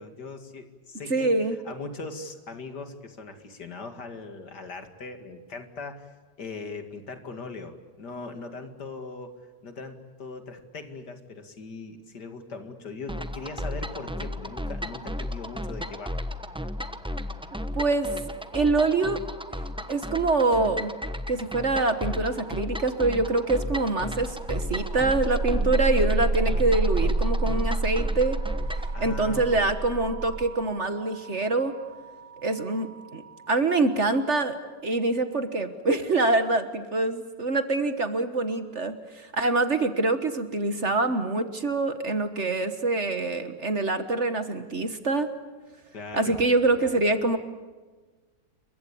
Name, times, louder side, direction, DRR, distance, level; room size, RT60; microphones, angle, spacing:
voice 1, 0.0-6.1 6.4-9.4 9.6-16.2 28.9-29.7 45.9-46.4 46.8-47.0, left 3 dB, 65° left, 7 dB, 2.8 m, -40 dB
voice 2, 1.1-1.6 17.7-18.1 18.5-19.2 19.9-20.9 21.3-28.4 29.0-31.7 32.4-33.2 33.5-45.3 46.1-47.4, right 3 dB, 40° right, 9 dB, 1.6 m, -25 dB
sound 1, 13.1-28.9, left 1 dB, 5° right, 0.7 m, -35 dB
sound 2, 24.0-33.8, right 2 dB, 60° right, 2.1 m, -29 dB
29.0 x 23.5 x 8.5 m, 1.3 s
omnidirectional pair, 1.9 m